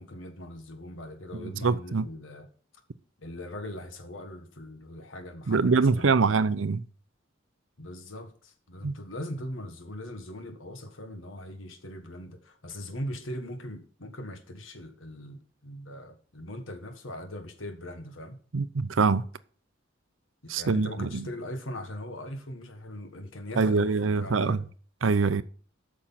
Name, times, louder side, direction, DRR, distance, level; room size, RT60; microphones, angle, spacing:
voice 1, 0.0-2.5 3.2-6.5 7.8-18.4 20.5-24.6, left 1 dB, 90° left, 1.6 m, -40 dB
voice 2, 1.4-2.0 5.5-6.8 8.8-8.9 18.5-19.3 20.5-21.3 23.6-24.6 25.0-25.4, right 4 dB, 80° right, 0.6 m, -24 dB
8.7 x 6.3 x 5.8 m
head